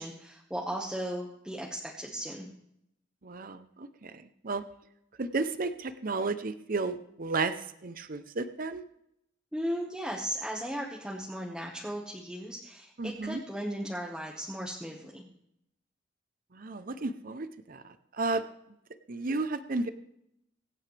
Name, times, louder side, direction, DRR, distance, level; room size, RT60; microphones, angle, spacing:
voice 1, 0.0-2.5 9.5-15.2, equal, 5° right, -3 dB, 1.5 m, -36 dB
voice 2, 3.2-4.6 5.2-8.8 13.0-13.4 16.5-18.4 19.1-19.9, right 3 dB, 50° right, 11 dB, 0.7 m, -33 dB
24.5 x 9.1 x 3.4 m, 0.77 s
head